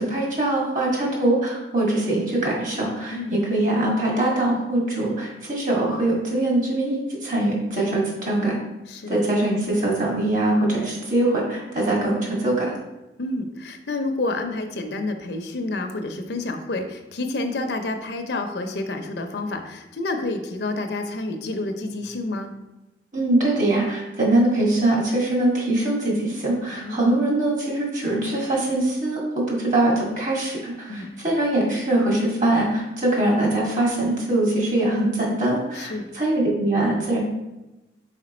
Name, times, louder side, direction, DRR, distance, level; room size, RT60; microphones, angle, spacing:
voice 1, 0.0-8.6 9.1-12.7 23.1-37.2, right 1 dB, 45° right, -3 dB, 1.9 m, -22 dB
voice 2, 3.1-3.4 8.9-9.2 13.2-22.5 26.7-27.1 30.9-31.1 35.7-36.1, left 2 dB, 70° left, 6 dB, 0.6 m, -29 dB
5.0 x 4.4 x 4.3 m, 1.0 s
head